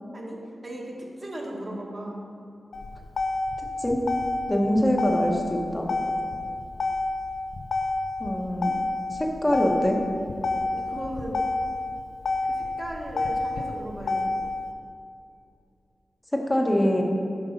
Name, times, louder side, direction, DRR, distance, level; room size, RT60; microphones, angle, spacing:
voice 1, 0.1-2.2 10.7-11.5 12.5-14.3, right 1 dB, 35° right, -3 dB, 1.4 m, -36 dB
Motor vehicle (road), 2.7-14.7, left 2 dB, 70° left, 0.6 m, -29 dB
voice 2, 4.5-5.9 8.2-8.7 9.1-10.0 16.3-17.0, equal, 10° left, 1 dB, 1.0 m, -24 dB
7.9 x 5.3 x 5.1 m, 2.5 s
wide cardioid pair, 120°, 0 cm